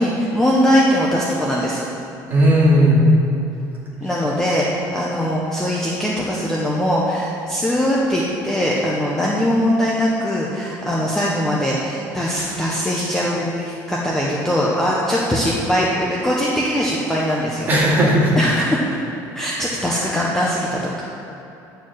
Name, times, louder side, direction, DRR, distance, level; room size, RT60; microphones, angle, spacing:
voice 1, 0.0-1.8 4.0-17.7 18.4-18.8 19.3-21.0, equal, 5° left, -5 dB, 0.6 m, -21 dB
voice 2, 2.3-3.0 17.7-18.5, equal, 25° right, -7 dB, 2.2 m, -15 dB
8.9 x 4.5 x 7.5 m, 2.9 s
cardioid pair, 180°, 8 cm